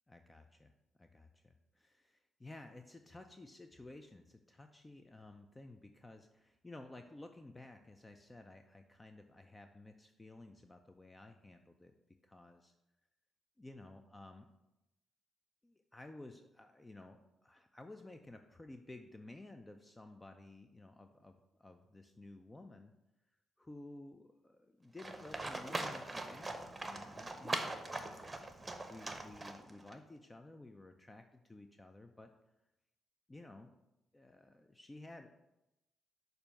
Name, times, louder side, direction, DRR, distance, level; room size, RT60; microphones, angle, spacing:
voice 1, 0.1-0.7 1.0-11.9 12.2-12.7 13.6-14.5 15.6-22.9 23.6-28.3 28.9-32.3 33.3-33.7 34.1-35.3, left 2 dB, 20° left, 6 dB, 0.5 m, -54 dB
Livestock farm animals working animals, 25.0-29.9, right 2 dB, 25° right, 0.8 m, -42 dB
6.7 x 2.6 x 5.5 m, 0.92 s
hypercardioid pair, 45°, 0 cm